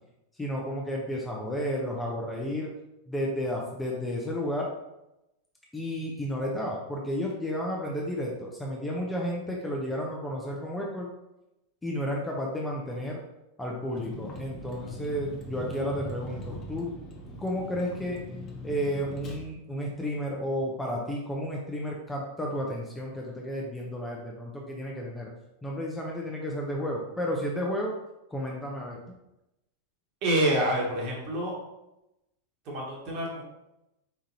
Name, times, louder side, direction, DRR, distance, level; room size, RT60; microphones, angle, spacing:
voice 1, 0.4-2.7 3.1-4.7 5.7-11.1 11.8-13.2 13.6-16.9 17.4-18.2 18.6-25.3 25.6-27.9 28.3-29.0, equal, 10° left, -2 dB, 0.7 m, -32 dB
Vehicle, 13.9-19.4, equal, 30° left, 1.0 m, -41 dB
voice 2, 30.2-31.6 32.6-33.4, right 1 dB, 40° right, -2 dB, 1.5 m, -27 dB
4.5 x 3.7 x 2.8 m, 0.91 s
figure-of-eight pair, 90°, 0 cm